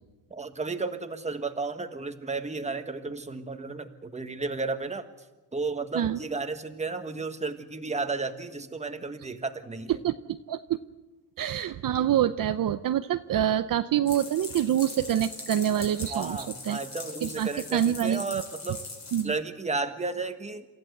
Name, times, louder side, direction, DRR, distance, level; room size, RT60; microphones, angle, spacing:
voice 1, 0.3-5.0 5.5-10.0 16.1-18.8 19.2-20.7, right 3 dB, 15° right, 7 dB, 1.5 m, -33 dB
voice 2, 10.0-10.8 11.4-16.4 16.7-16.8 17.2-18.2 19.1-19.3, right 10 dB, 55° right, 10 dB, 0.7 m, -26 dB
sound 1, 14.1-19.2, left 3 dB, 45° left, 6.1 m, -41 dB
27.5 x 14.5 x 7.9 m, 1.1 s
cardioid pair, 130°, 39 cm